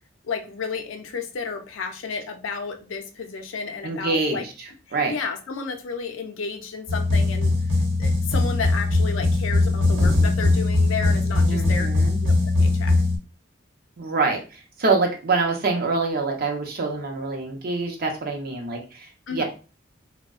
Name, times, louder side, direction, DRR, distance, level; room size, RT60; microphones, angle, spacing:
voice 1, 0.2-4.4 5.1-7.5 8.0-11.9 12.2-12.9 19.3-19.4, left 5 dB, 75° left, 5 dB, 0.4 m, -32 dB
voice 2, 3.8-5.1 11.4-12.2 14.0-19.4, right 3 dB, 50° right, 2 dB, 0.6 m, -26 dB
sound 1, 6.9-13.2, left 2 dB, 75° right, 0.9 m, -20 dB
2.6 x 2.1 x 2.3 m, 0.34 s
head